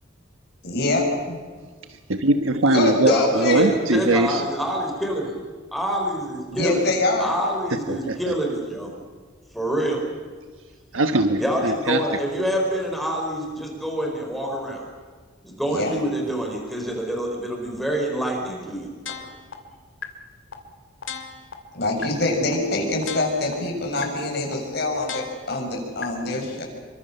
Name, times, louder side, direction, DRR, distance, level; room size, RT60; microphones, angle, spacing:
voice 1, 0.6-1.4 2.7-3.6 6.5-7.3 15.7-15.9 21.7-26.6, left 2 dB, 55° left, 1 dB, 7.0 m, -24 dB
voice 2, 2.1-4.4 7.9-8.2 10.9-12.0, right 2 dB, 85° right, 7 dB, 1.3 m, -21 dB
voice 3, 3.1-5.3 5.7-6.8 7.2-8.9 9.5-10.1 11.4-14.9 15.4-18.9, right 1 dB, ahead, 0 dB, 4.6 m, -26 dB
sound 1, 19.1-19.5 20.0-20.1 20.5-20.6 21.0-21.5 22.0-22.1 22.5-22.6 23.0-23.5 24.0-24.1 24.5-24.6 25.0-25.5 26.0-26.1, left 6 dB, 75° left, 2.8 m, -34 dB
28.0 x 24.0 x 6.8 m, 1.5 s
head